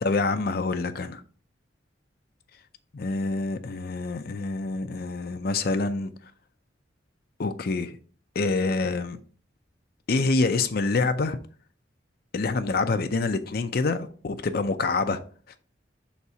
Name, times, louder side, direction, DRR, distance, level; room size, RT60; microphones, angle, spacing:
voice 1, 0.0-1.2 2.9-6.1 7.4-7.9 8.4-9.2 10.1-11.4 12.3-15.2, left 3 dB, 55° left, 0.5 m, -26 dB
5.9 x 4.1 x 4.7 m
head